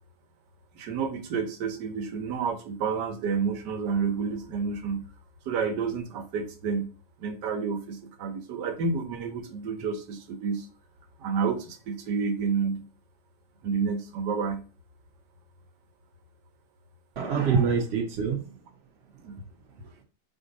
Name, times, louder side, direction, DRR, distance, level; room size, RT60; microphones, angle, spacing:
voice 1, 0.7-5.0 5.5-6.9 7.2-10.7 11.2-12.9 13.6-14.6 19.2-19.4, right 5 dB, 85° right, 1.4 m, -30 dB
voice 2, 17.2-18.6 19.1-19.2 19.6-20.0, right 6 dB, 55° right, 0.8 m, -28 dB
4.3 x 2.6 x 3.9 m
omnidirectional pair, 1.8 m